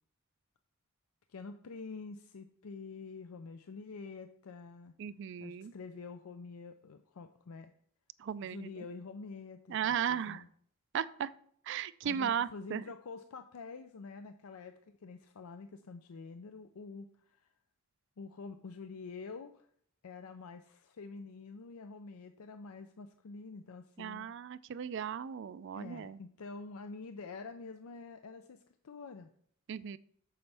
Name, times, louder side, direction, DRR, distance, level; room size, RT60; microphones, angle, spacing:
voice 1, 1.3-5.0 5.4-7.7 8.4-10.5 12.0-17.5 18.2-19.7 20.0-24.3 25.7-29.3, left 4 dB, 85° left, 8 dB, 0.5 m, -47 dB
voice 2, 5.0-5.7 8.2-8.9 9.7-10.4 10.9-11.3 11.7-12.8 24.0-26.2 29.7-30.0, right 8 dB, 55° right, 17 dB, 0.3 m, -36 dB
9.4 x 6.9 x 3.4 m, 0.63 s
head